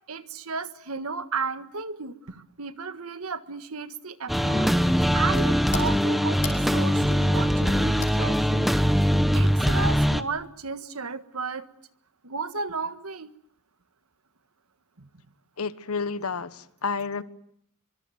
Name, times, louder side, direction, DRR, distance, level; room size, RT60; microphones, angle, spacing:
voice 1, 0.1-4.7 5.1-8.7 9.3-11.7 12.2-13.3 15.0-15.1, right 4 dB, 90° right, 1.6 m, -33 dB
sound 1, 4.3-10.2, equal, ahead, 1.1 m, -22 dB
sound 2, 4.6-9.9, left 6 dB, 35° left, 4.5 m, -44 dB
voice 2, 15.6-17.2, left 5 dB, 90° left, 1.3 m, -30 dB
24.5 x 24.5 x 9.2 m
head